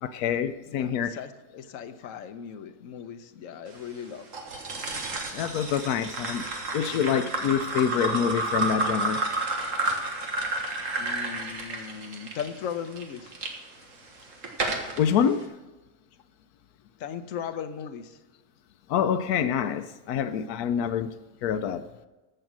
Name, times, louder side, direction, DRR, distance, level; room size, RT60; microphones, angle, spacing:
voice 1, 0.0-1.2 5.3-6.4 6.7-9.2 15.0-15.5 18.9-21.1 21.4-21.8, left 8 dB, 85° left, 11 dB, 1.1 m, -26 dB
voice 2, 0.7-4.3 10.9-13.3 17.0-18.2, left 8 dB, 65° left, 9 dB, 1.1 m, -37 dB
sound 1, 4.3-13.5 14.1-15.0, right 2 dB, 60° right, 1.8 m, -31 dB
14.5 x 6.8 x 6.1 m, 1.2 s
omnidirectional pair, 1.5 m